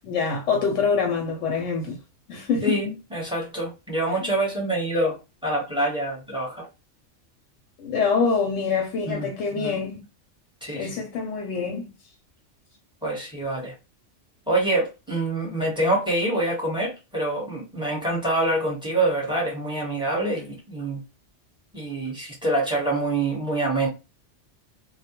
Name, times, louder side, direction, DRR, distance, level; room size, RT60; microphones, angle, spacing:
voice 1, 0.0-2.0 2.3-2.8 7.8-10.0 10.7-11.9, left 5 dB, 85° left, 0.9 m, -25 dB
voice 2, 2.6-5.2 5.4-6.7 8.9-9.8 10.6-10.9 13.0-13.7 14.5-21.0 21.7-23.9, right 1 dB, 5° right, 0.9 m, -26 dB
2.2 x 2.1 x 2.9 m
omnidirectional pair, 1.3 m